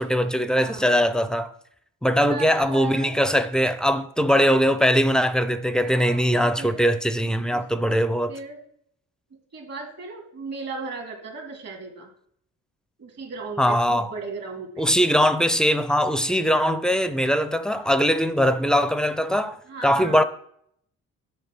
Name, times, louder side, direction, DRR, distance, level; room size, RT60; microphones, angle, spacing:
voice 1, 0.0-1.5 2.0-8.3 13.6-14.1 14.8-20.2, equal, ahead, 0.6 m, -21 dB
voice 2, 0.5-1.0 2.1-3.2 5.8-6.8 7.5-7.6 8.3-8.6 9.3-12.1 13.0-14.9 16.3-16.8 19.7-20.2, right 3 dB, 55° right, 2.5 m, -37 dB
10.5 x 3.5 x 6.0 m
cardioid pair, 90°, 30 cm